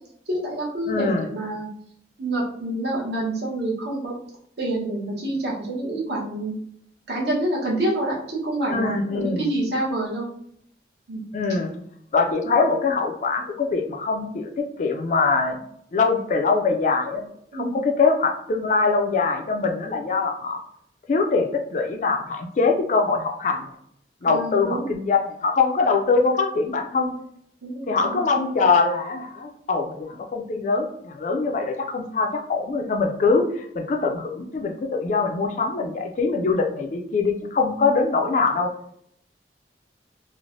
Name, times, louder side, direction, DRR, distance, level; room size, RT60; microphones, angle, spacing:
voice 1, 0.3-1.7 2.2-4.1 4.6-6.6 7.1-10.3 11.1-11.2 17.5-17.8 24.2-24.9 27.6-28.2, right 1 dB, 70° right, -4 dB, 0.9 m, -27 dB
voice 2, 0.9-1.3 8.7-9.5 11.3-11.7 12.1-15.6 15.9-20.6 21.1-23.6 24.2-27.2 27.9-38.7, left 4 dB, 40° left, 3 dB, 0.3 m, -23 dB
3.1 x 2.0 x 2.5 m, 0.68 s
head